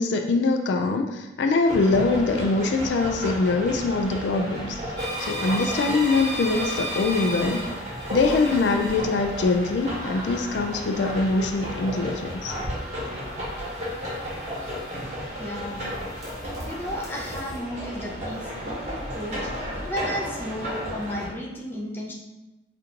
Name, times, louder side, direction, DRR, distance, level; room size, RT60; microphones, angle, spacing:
voice 1, 0.0-4.8 5.2-7.6 8.1-12.5, left 3 dB, 70° left, 5 dB, 0.3 m, -23 dB
sound 1, 1.7-21.3, equal, 35° right, 1.1 m, -33 dB
sound 2, 5.0-15.4 15.8-17.6, right 1 dB, 20° right, 0.8 m, -37 dB
voice 2, 15.4-15.8 16.7-18.5 18.8-22.1, equal, 10° left, -3 dB, 0.5 m, -33 dB
5.0 x 2.5 x 2.8 m, 1.0 s
head